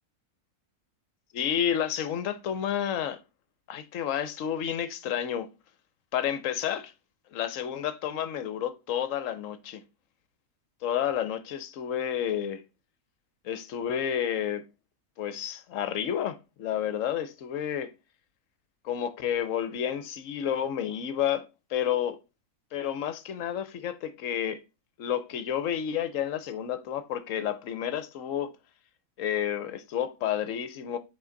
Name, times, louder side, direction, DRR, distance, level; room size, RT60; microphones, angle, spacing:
voice 1, 1.3-3.2 3.7-5.5 6.1-6.9 7.3-9.8 10.8-12.6 13.4-14.6 15.2-17.9 18.8-22.2 22.7-24.6 25.0-28.5 29.2-31.0, left 9 dB, 65° left, 1.0 m, -30 dB
6.0 x 4.4 x 3.8 m
omnidirectional pair, 1.6 m